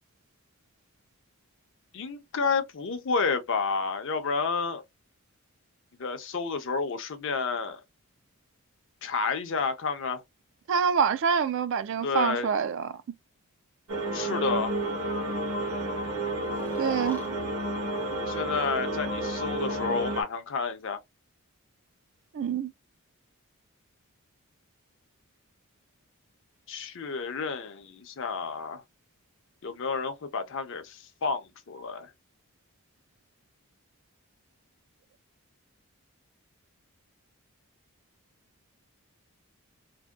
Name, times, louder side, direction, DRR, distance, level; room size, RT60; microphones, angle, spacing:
voice 1, 1.9-4.8 6.0-7.8 9.0-10.2 12.0-12.5 14.1-14.7 18.2-21.0 26.7-28.8 29.6-32.1, left 4 dB, 55° left, 0.5 m, -30 dB
voice 2, 10.7-12.9 16.8-17.2 22.3-22.7, right 6 dB, 55° right, 0.3 m, -26 dB
sound 1, 13.9-20.2, right 1 dB, 70° right, 1.0 m, -31 dB
Breathing, 15.1-15.7 16.5-17.3 18.4-19.3, left 2 dB, 10° left, 0.5 m, -45 dB
2.6 x 2.1 x 2.2 m
head